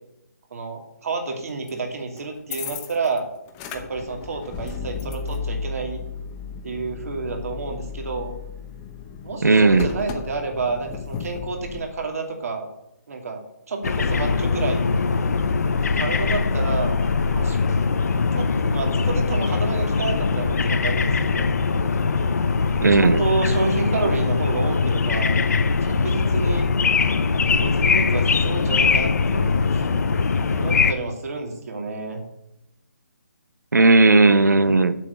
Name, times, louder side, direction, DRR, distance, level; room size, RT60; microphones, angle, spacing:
voice 1, 0.5-3.3 3.7-6.0 6.6-8.3 9.2-12.7 13.1-13.4 13.7-14.9 15.8-16.9 17.3-17.6 18.3-21.5 23.0-25.4 25.8-26.7 27.6-29.9 30.5-32.2, right 3 dB, 60° right, 3 dB, 2.6 m, -29 dB
sound 1, 1.7-1.8 2.2-3.2 3.5-11.8, left 5 dB, 20° left, 1.0 m, -34 dB
voice 2, 9.4-9.9 22.8-23.2 33.7-35.0, right 3 dB, 90° right, 12 dB, 1.0 m, -15 dB
sound 2, 13.8-30.9, left 4 dB, 65° left, 0.8 m, -21 dB
7.4 x 6.4 x 8.0 m, 0.84 s
hypercardioid pair, 155°, 9 cm